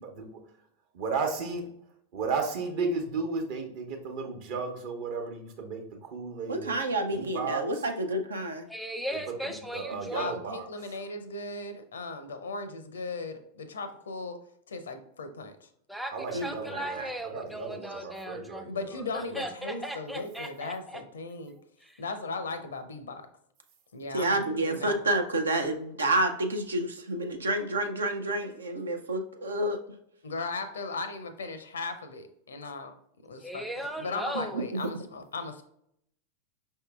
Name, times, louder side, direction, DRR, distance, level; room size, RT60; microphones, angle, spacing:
voice 1, 1.0-1.6 2.1-6.8 7.1-7.6 9.7-10.6 16.1-17.0 17.3-18.7, right 4 dB, 50° right, 3 dB, 0.9 m, -33 dB
voice 2, 6.5-8.6 16.3-17.1 24.1-29.8 34.5-34.8, right 1 dB, 70° right, 6 dB, 0.5 m, -29 dB
voice 3, 8.7-10.3 15.9-18.6 18.9-21.0 21.8-22.0 33.4-34.6, equal, ahead, 6 dB, 0.6 m, -37 dB
voice 4, 10.1-14.4 14.7-15.7 18.7-21.6 22.0-23.3 23.9-25.1 30.2-32.9 33.2-35.6, left 3 dB, 70° left, 10 dB, 0.5 m, -37 dB
5.4 x 3.6 x 2.3 m, 0.73 s
figure-of-eight pair, 90°, 0 cm